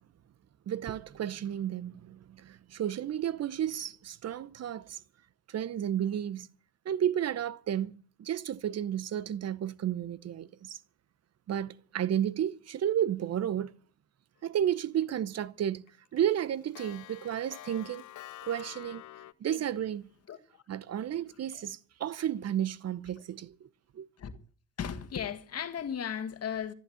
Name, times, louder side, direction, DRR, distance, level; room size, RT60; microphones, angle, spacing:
voice 1, 0.7-5.0 5.5-6.5 6.8-10.8 11.5-13.7 14.4-15.8 16.1-18.0 18.5-19.0 19.4-20.0 20.7-23.7 23.9-24.1, right 10 dB, 55° right, 0.9 m, -32 dB
Clock, 14.6-15.0 15.4-15.5 15.9-19.3, left 13 dB, 75° left, 0.9 m, -48 dB
voice 2, 24.8-26.7, left 8 dB, 55° left, 1.8 m, -36 dB
14.5 x 10.5 x 7.9 m
cardioid pair, 90°, 30 cm